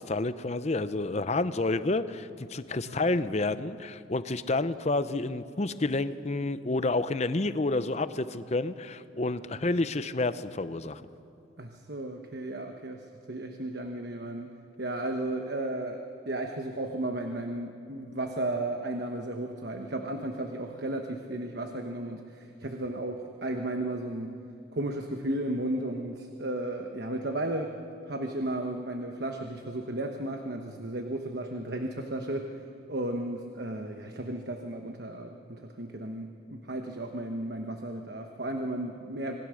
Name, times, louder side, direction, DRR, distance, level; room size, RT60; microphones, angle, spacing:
voice 1, 0.0-11.0, left 2 dB, 35° left, 13 dB, 0.6 m, -29 dB
voice 2, 2.8-3.2 9.5-9.7 11.6-14.5 14.8-24.3 24.7-27.8 28.1-32.6 32.9-39.4, right 1 dB, 55° right, 4 dB, 1.2 m, -34 dB
27.0 x 19.5 x 6.4 m, 2.6 s
head